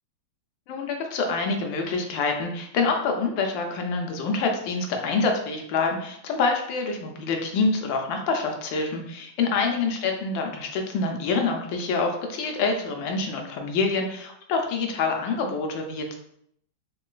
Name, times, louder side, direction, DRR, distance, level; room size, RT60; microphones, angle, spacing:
voice 1, 0.7-16.1, left 4 dB, 75° left, 3 dB, 1.2 m, -26 dB
3.7 x 2.2 x 2.3 m, 0.70 s
omnidirectional pair, 2.3 m